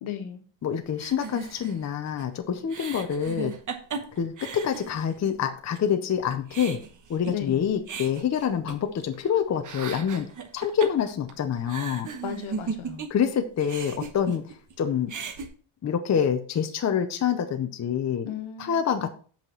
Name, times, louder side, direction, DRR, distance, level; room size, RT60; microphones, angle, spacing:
voice 1, 0.0-0.4 7.3-7.6 12.2-13.0 18.2-19.1, left 9 dB, 70° left, 1.5 m, -35 dB
voice 2, 0.6-3.5 4.2-6.8 7.1-10.3 10.5-12.1 13.1-15.1 15.8-18.3 18.6-19.1, left 8 dB, 35° left, 0.7 m, -26 dB
sound 1, 1.0-5.4 5.7-5.8 6.2-9.3 9.5-13.3 13.6-14.7 15.0-15.5, right 5 dB, 35° right, 1.2 m, -37 dB
8.1 x 5.8 x 4.5 m
cardioid pair, 170°, 50 cm